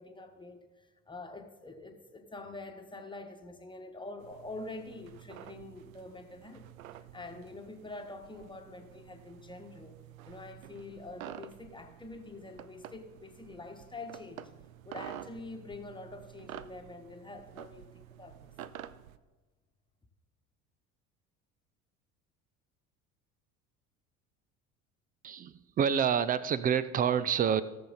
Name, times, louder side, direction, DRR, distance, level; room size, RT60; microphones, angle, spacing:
voice 1, 0.0-6.7 7.1-9.9 10.2-14.5 14.8-18.5, left 2 dB, 10° left, 5 dB, 1.5 m, -46 dB
sound 1, 4.2-19.2, right 11 dB, 70° right, 0.6 m, -49 dB
voice 2, 25.2-27.6, right 8 dB, 20° right, 16 dB, 0.4 m, -28 dB
17.5 x 7.0 x 4.1 m, 1.2 s
figure-of-eight pair, 65°, 43 cm